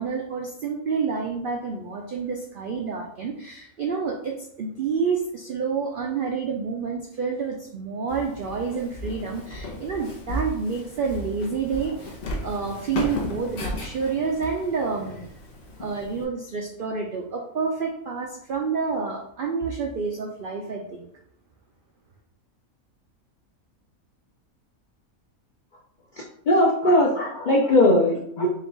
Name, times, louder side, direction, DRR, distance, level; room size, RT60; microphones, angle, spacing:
voice 1, 0.0-15.3 15.8-21.1, right 5 dB, 80° right, 1 dB, 0.4 m, -29 dB
Walk footsteps, 8.1-16.2, left 1 dB, 50° left, 0.8 m, -35 dB
voice 2, 26.2-28.5, left 1 dB, 75° left, 0 dB, 0.4 m, -20 dB
4.3 x 2.3 x 3.8 m, 0.71 s
omnidirectional pair, 1.5 m